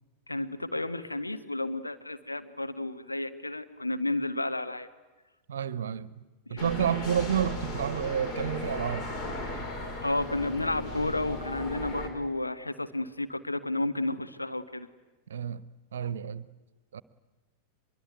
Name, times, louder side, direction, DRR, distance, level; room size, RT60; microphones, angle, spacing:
voice 1, 0.3-4.9 6.5-6.6 10.0-14.9, left 2 dB, 85° left, 1.3 m, -32 dB
voice 2, 5.5-6.1 6.5-9.1 15.3-15.6 15.9-16.5 16.9-17.0, right 8 dB, 65° right, 0.9 m, -30 dB
sound 1, 6.6-12.1, left 2 dB, 35° left, 4.9 m, -36 dB
24.0 x 22.5 x 9.4 m
figure-of-eight pair, 90°, 0 cm